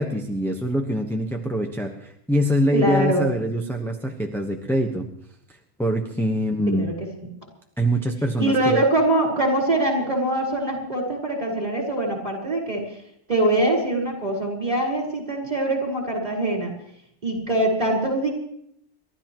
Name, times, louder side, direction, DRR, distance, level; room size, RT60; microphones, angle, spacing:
voice 1, 0.0-5.1 5.8-6.9 7.8-8.8, equal, ahead, 0 dB, 1.0 m, -24 dB
voice 2, 2.7-3.3 6.7-6.9 8.4-12.8 13.3-16.7 17.2-18.3, right 1 dB, 35° right, -2 dB, 4.9 m, -23 dB
29.5 x 12.5 x 3.1 m, 0.71 s
omnidirectional pair, 1.2 m